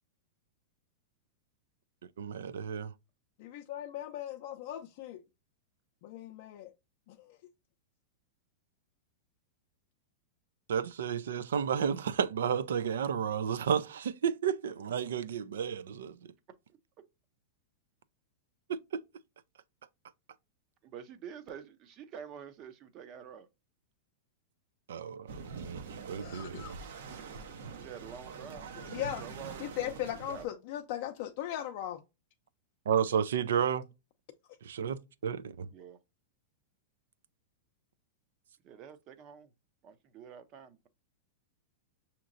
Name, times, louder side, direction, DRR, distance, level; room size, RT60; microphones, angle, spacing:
voice 1, 2.2-2.9 10.7-16.1 18.7-18.8 24.9-26.8 32.9-33.9 34.6-35.7, right 8 dB, 90° right, 0.4 m, -32 dB
voice 2, 3.4-5.2 6.0-6.7 7.1-7.4 26.2-26.8 28.9-29.2 29.6-32.0, left 12 dB, 50° left, 0.5 m, -38 dB
voice 3, 20.8-23.5 27.7-30.5 35.7-36.0 38.6-39.5 39.8-40.8, right 8 dB, 30° right, 0.6 m, -48 dB
sound 1, 25.3-30.4, right 5 dB, 70° right, 0.8 m, -45 dB
6.2 x 2.9 x 2.5 m
supercardioid pair, 155°, 0 cm